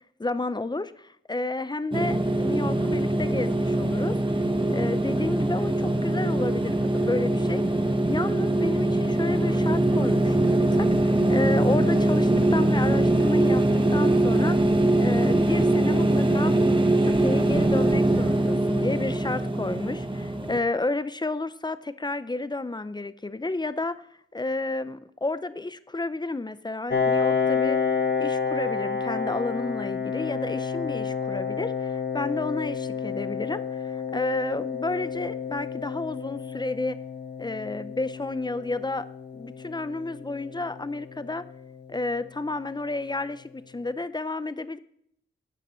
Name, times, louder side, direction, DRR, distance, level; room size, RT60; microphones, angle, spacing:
voice 1, 0.2-4.4 4.7-7.7 8.1-13.6 13.9-14.7 15.0-16.5 17.0-24.0 24.3-27.8 28.2-37.0 37.4-39.1 39.3-41.4 41.9-44.8, left 2 dB, 20° left, 14 dB, 0.5 m, -31 dB
sound 1, 1.9-20.6, right 1 dB, 25° right, 1.1 m, -22 dB
Piano, 26.9-42.3, left 5 dB, 55° left, 1.1 m, -30 dB
12.5 x 9.2 x 4.3 m, 0.71 s
wide cardioid pair, 110°, 21 cm